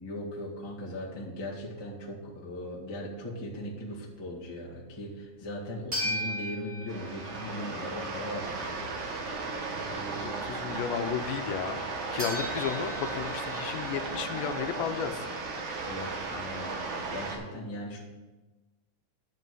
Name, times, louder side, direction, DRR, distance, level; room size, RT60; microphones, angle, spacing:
voice 1, 0.0-8.9 15.8-18.0, left 1 dB, 25° left, -4 dB, 0.5 m, -39 dB
sound 1, 5.9-7.9 12.2-15.3, equal, 20° right, 2.2 m, -38 dB
sound 2, 6.3-6.4 6.9-7.2 7.7-8.0 8.5-8.8 9.3-9.5 10.1-11.1 11.6-11.9, equal, ahead, 1.1 m, -51 dB
sound 3, 6.9-17.4, right 3 dB, 70° right, 1.1 m, -35 dB
voice 2, 10.2-11.8 12.1-15.3, left 7 dB, 80° left, 7 dB, 2.4 m, -33 dB
10.5 x 5.4 x 6.2 m, 1.2 s
omnidirectional pair, 4.0 m